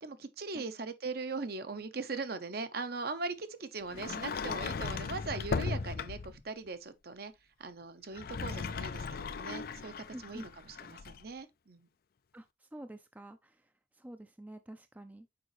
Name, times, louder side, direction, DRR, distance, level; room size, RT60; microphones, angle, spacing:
voice 1, 0.0-7.3 7.6-11.9, right 3 dB, 55° right, 0.8 m, -40 dB
Sliding door, 3.9-6.4 8.0-11.2, left 5 dB, 50° left, 0.4 m, -37 dB
voice 2, 10.1-10.5 12.3-13.7 13.9-15.3, right 1 dB, 10° right, 0.4 m, -48 dB
6.8 x 4.9 x 3.1 m
head